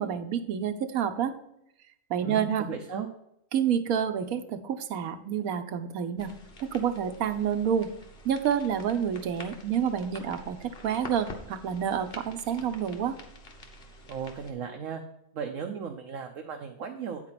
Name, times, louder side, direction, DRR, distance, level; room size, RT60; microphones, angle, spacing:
voice 1, 0.0-1.3 2.1-2.7 3.5-6.3 6.7-7.9 8.2-13.2, right 8 dB, 85° right, 9 dB, 1.2 m, -28 dB
voice 2, 2.2-3.1 14.1-15.0 15.3-17.2, right 6 dB, 70° right, 4 dB, 1.2 m, -36 dB
sound 1, 6.2-14.5, left 1 dB, 45° left, 1.5 m, -47 dB
9.5 x 4.6 x 5.8 m, 0.79 s
omnidirectional pair, 1.5 m